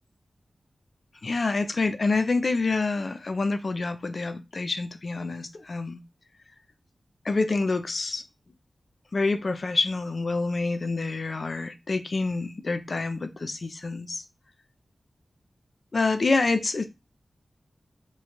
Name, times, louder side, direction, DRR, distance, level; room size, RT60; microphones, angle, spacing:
voice 1, 1.2-6.0 7.2-8.2 9.1-14.2 15.9-16.8, left 3 dB, 60° left, 0.5 m, -27 dB
3.0 x 2.4 x 4.2 m
cardioid pair, 45°, 0 cm